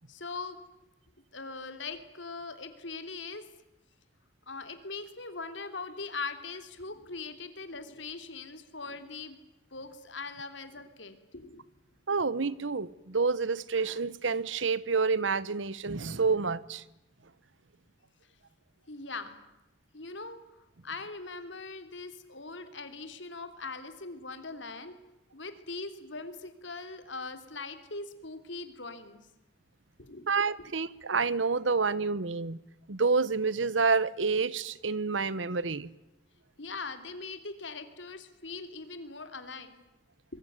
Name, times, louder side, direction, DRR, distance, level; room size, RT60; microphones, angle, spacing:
voice 1, 0.1-0.6 1.3-3.4 4.5-9.4 9.7-11.6 18.9-19.4 19.9-20.4 20.8-24.9 25.3-29.2 30.1-30.3 36.6-39.7, left 3 dB, 75° left, 3.2 m, -41 dB
voice 2, 12.1-16.8 30.3-32.6 32.9-35.9, right 4 dB, 85° right, 1.0 m, -28 dB
25.0 x 23.0 x 9.5 m
head